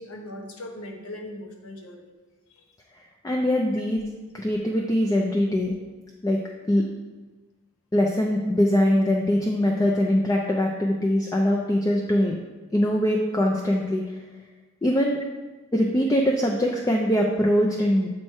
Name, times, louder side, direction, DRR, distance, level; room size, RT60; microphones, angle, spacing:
voice 1, 0.0-2.1 2.5-2.6, left 1 dB, 80° left, 2 dB, 0.9 m, -39 dB
voice 2, 3.2-4.0 4.3-5.8 6.2-6.4 6.7-6.9 7.9-12.4 12.7-14.0 14.8-15.2 15.7-18.1, equal, 15° left, 0 dB, 0.4 m, -22 dB
7.2 x 3.1 x 4.3 m, 1.2 s
head